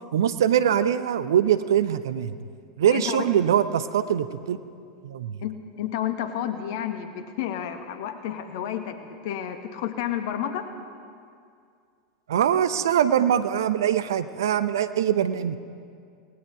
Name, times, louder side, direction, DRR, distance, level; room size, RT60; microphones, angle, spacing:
voice 1, 0.1-2.4 2.8-4.6 5.0-5.4 12.3-15.6, right 9 dB, 70° right, 12 dB, 0.9 m, -23 dB
voice 2, 2.9-3.3 5.4-10.7, left 10 dB, 60° left, 7 dB, 1.7 m, -31 dB
29.0 x 19.5 x 4.8 m, 2.3 s
figure-of-eight pair, 85°, 2 cm